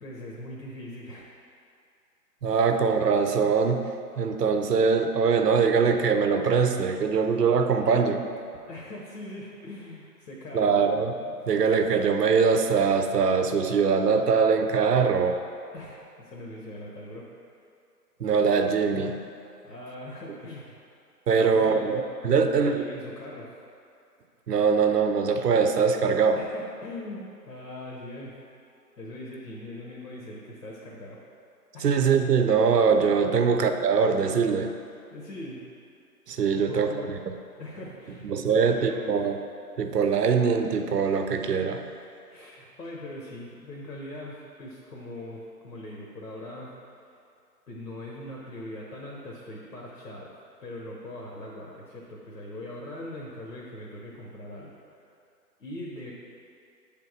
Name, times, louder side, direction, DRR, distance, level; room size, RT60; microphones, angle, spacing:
voice 1, 0.0-1.3 8.7-10.7 15.7-17.3 19.6-20.8 21.3-21.9 22.3-23.5 26.3-28.3 29.0-31.2 31.7-31.9 33.3-33.5 35.1-35.6 36.5-37.1 37.6-39.2 42.0-46.7 47.7-50.3 50.6-55.1 55.6-56.1, left 1 dB, 70° left, -3 dB, 1.2 m, -41 dB
voice 2, 2.4-3.9 4.2-8.2 10.5-11.2 11.5-15.4 18.2-19.2 21.3-22.9 24.5-26.4 31.8-34.7 36.3-36.9 37.3-37.4 38.2-39.4 39.8-41.8, right 5 dB, 75° right, 7 dB, 0.7 m, -22 dB
7.3 x 3.6 x 4.7 m, 2.5 s
figure-of-eight pair, 130°, 49 cm